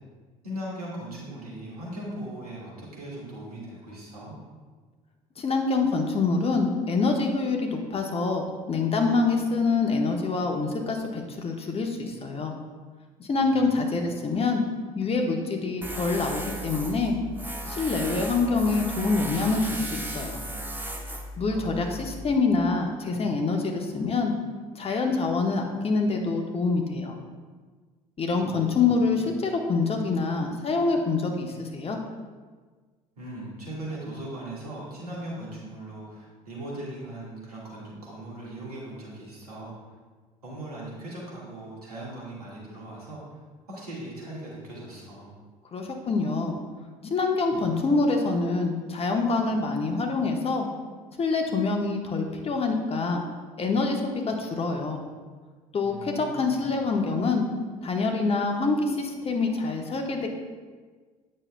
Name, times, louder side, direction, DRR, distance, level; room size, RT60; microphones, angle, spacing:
voice 1, 0.4-4.4 13.4-13.9 21.5-22.1 28.4-29.2 33.2-39.8 40.4-43.4 43.7-45.3 55.8-56.6, right 1 dB, 85° right, -6 dB, 1.7 m, -39 dB
voice 2, 5.4-12.5 13.2-14.6 14.9-17.1 17.7-20.4 21.4-24.3 24.7-27.2 28.2-32.0 45.7-46.6 47.0-50.7 51.2-53.2 53.6-55.0 55.7-57.5 57.8-60.3, left 3 dB, 30° left, 3 dB, 1.0 m, -26 dB
Tools, 15.8-22.3, right 1 dB, 10° right, 0.9 m, -35 dB
8.7 x 6.4 x 2.2 m, 1.4 s
figure-of-eight pair, 55°, 19 cm